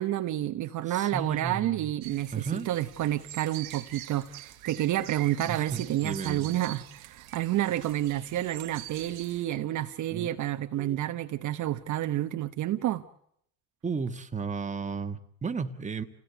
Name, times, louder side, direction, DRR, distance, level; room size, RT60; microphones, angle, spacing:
voice 1, 0.0-13.0, right 13 dB, 45° right, 1.1 m, -29 dB
voice 2, 0.9-1.9 2.3-2.7 5.5-6.5 10.1-10.3 10.8-11.0 13.8-16.0, right 5 dB, 15° right, 1.6 m, -34 dB
sound 1, 2.0-9.4, right 14 dB, 85° right, 2.1 m, -45 dB
28.0 x 17.5 x 8.2 m
supercardioid pair, 100°, 41 cm